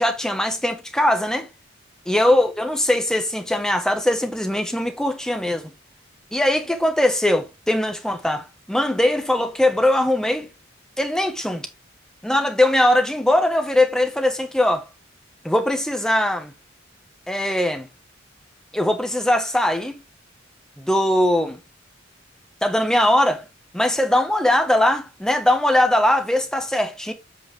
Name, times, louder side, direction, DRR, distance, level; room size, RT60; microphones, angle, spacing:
voice 1, 0.0-1.5 2.1-5.7 6.3-10.5 11.0-11.7 12.2-14.9 15.4-16.5 17.3-17.9 18.7-20.0 20.8-21.6 22.6-23.4 23.7-27.1, left 1 dB, 5° left, 1.3 m, -20 dB
8.2 x 4.6 x 3.7 m
head